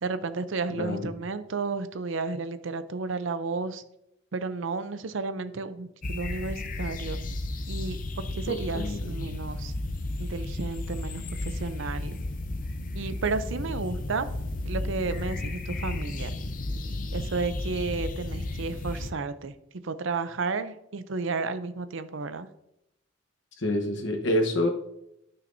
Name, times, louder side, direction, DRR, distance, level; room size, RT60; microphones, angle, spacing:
voice 1, 0.0-3.8 4.3-7.2 7.7-9.7 10.2-12.2 12.9-14.3 14.6-16.3 17.1-19.5 19.8-22.5, right 4 dB, 70° right, 0.6 m, -32 dB
voice 2, 0.8-1.1 8.5-9.1 23.6-24.7, left 1 dB, 60° left, 1.1 m, -27 dB
sound 1, 6.0-19.1, left 2 dB, 40° left, 0.6 m, -33 dB
13.0 x 5.7 x 2.7 m
head